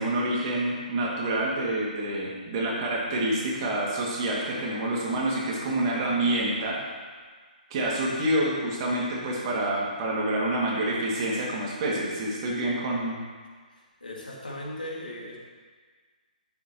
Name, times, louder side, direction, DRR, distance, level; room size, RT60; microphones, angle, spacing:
voice 1, 0.0-6.8 7.7-13.2, right 1 dB, 35° right, -4 dB, 2.2 m, -27 dB
voice 2, 13.8-15.4, left 1 dB, 80° left, -4 dB, 2.2 m, -38 dB
10.5 x 7.2 x 3.0 m, 1.5 s
figure-of-eight pair, 130°, 5 cm